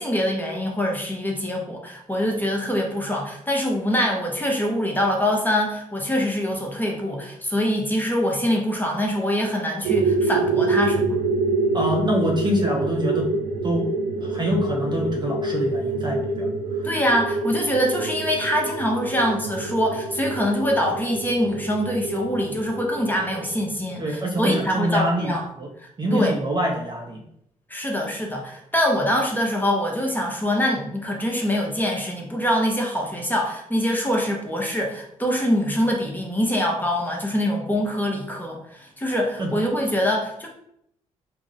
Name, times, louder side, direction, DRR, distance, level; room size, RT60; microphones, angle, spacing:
voice 1, 0.0-11.2 16.8-25.5 25.8-26.3 27.7-40.5, equal, 10° left, 0 dB, 0.9 m, -24 dB
sound 1, 9.8-24.1, right 3 dB, 65° right, 0.5 m, -26 dB
voice 2, 11.7-13.3 13.6-13.9 14.2-16.5 24.0-25.3 25.6-25.7 26.0-27.2 39.4-39.5, equal, 25° right, 0 dB, 0.6 m, -25 dB
3.5 x 2.1 x 3.9 m, 0.73 s
figure-of-eight pair, 40°, 18 cm